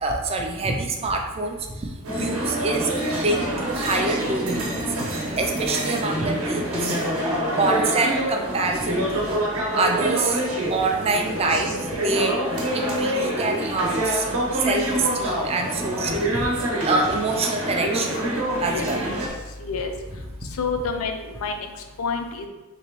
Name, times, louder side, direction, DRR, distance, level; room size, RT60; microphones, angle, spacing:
voice 1, 0.0-1.9 2.1-4.8 5.4-7.0 7.6-9.4 9.8-10.4 10.7-11.8 12.0-14.3 14.6-16.4 16.8-18.2 18.6-19.0, right 3 dB, 25° right, 3 dB, 0.3 m, -25 dB
sound 1, 2.0-19.3, right 1 dB, 65° right, 0.8 m, -26 dB
voice 2, 20.6-21.6 22.0-22.5, left 5 dB, 70° left, 5 dB, 0.4 m, -28 dB
3.6 x 3.0 x 2.9 m, 1.1 s
head